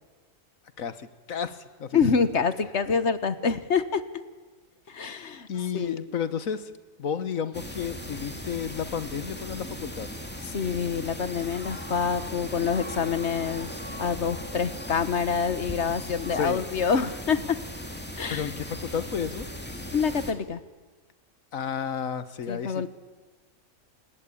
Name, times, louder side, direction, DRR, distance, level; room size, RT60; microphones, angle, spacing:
voice 1, 0.8-2.0 5.5-6.7 7.0-10.1 16.3-16.6 18.3-19.5 21.5-22.9, left 7 dB, 80° left, 13 dB, 1.6 m, -32 dB
voice 2, 1.9-4.0 4.9-5.5 5.7-6.1 10.5-13.7 14.0-17.6 18.2-18.5 19.9-20.6 22.5-22.9, left 6 dB, 55° left, 13 dB, 1.4 m, -26 dB
sound 1, 7.5-20.3, left 1 dB, 5° left, 2.2 m, -38 dB
27.0 x 20.5 x 8.6 m, 1.3 s
omnidirectional pair, 1.4 m